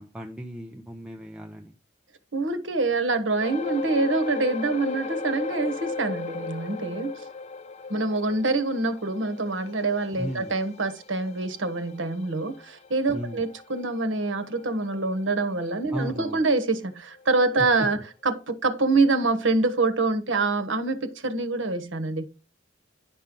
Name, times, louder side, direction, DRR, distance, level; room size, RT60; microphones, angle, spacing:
voice 1, 0.0-1.7 10.2-10.5 13.1-13.4 15.9-16.4 17.6-17.9, equal, 5° right, 0.7 m, -35 dB
voice 2, 2.3-7.2 7.9-22.3, right 3 dB, 75° right, 1.2 m, -25 dB
sound 1, 3.4-16.1 16.4-16.6 17.2-17.3, left 4 dB, 35° left, 0.5 m, -37 dB
10.5 x 5.6 x 3.8 m
head